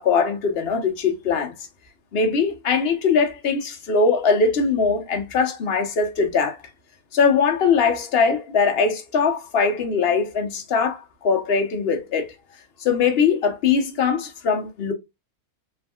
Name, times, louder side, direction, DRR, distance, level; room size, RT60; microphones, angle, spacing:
voice 1, 0.0-1.5 2.1-6.6 7.1-12.3 12.8-14.9, left 5 dB, 55° left, 0.7 m, -21 dB
3.4 x 2.4 x 2.2 m
omnidirectional pair, 1.6 m